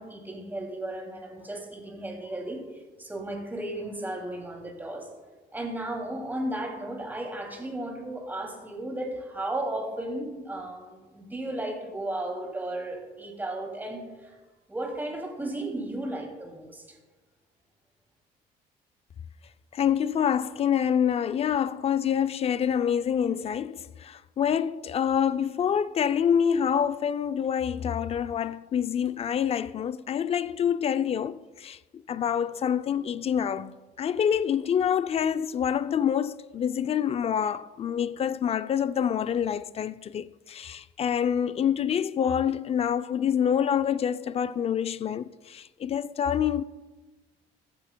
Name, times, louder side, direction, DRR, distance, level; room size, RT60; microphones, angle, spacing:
voice 1, 0.0-2.6 3.0-5.1 5.5-14.3 14.7-17.0, right 1 dB, 10° right, 2.6 m, -34 dB
voice 2, 19.7-31.8 32.1-46.6, left 8 dB, 35° left, 0.4 m, -26 dB
15.0 x 12.0 x 2.2 m
cardioid pair, 110°, 17 cm